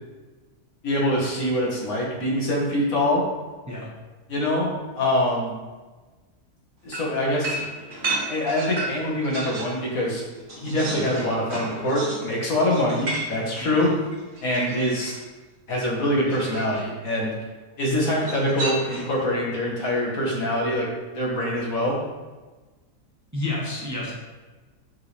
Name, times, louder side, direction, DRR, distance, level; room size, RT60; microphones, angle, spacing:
voice 1, 0.8-3.2 4.3-4.7 5.0-5.5 6.8-7.6 8.3-10.2 10.6-13.9 14.4-15.1 15.7-17.3 17.8-20.9 21.1-22.0, left 1 dB, 70° left, -3 dB, 1.9 m, -24 dB
sound 1, 6.9-9.8 10.2-15.2 16.3-16.9 18.2-19.2, right 2 dB, 40° right, 1.4 m, -33 dB
voice 2, 23.3-24.1, left 2 dB, 15° right, -5 dB, 1.1 m, -29 dB
8.1 x 4.7 x 3.3 m, 1.3 s
omnidirectional pair, 1.6 m